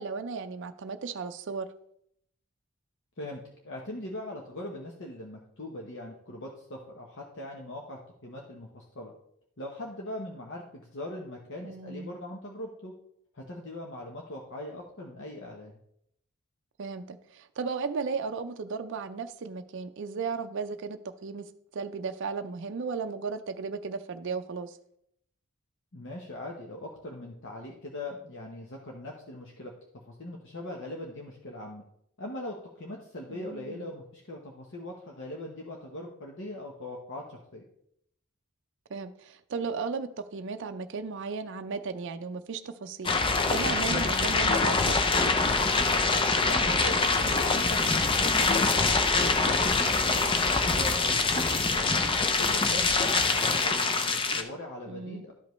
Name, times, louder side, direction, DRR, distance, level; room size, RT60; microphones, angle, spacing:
voice 1, 0.0-1.7 11.6-12.1 16.8-24.8 33.3-33.8 38.9-44.9 54.9-55.2, right 5 dB, 55° right, 8 dB, 0.4 m, -35 dB
voice 2, 3.2-9.1 9.6-12.9 13.3-15.8 25.9-31.8 32.2-37.6 46.5-51.9 52.4-55.3, left 1 dB, 60° left, 0 dB, 1.0 m, -41 dB
sound 1, 43.0-54.4, left 3 dB, 25° left, 0.5 m, -25 dB
12.0 x 5.2 x 3.1 m, 0.72 s
head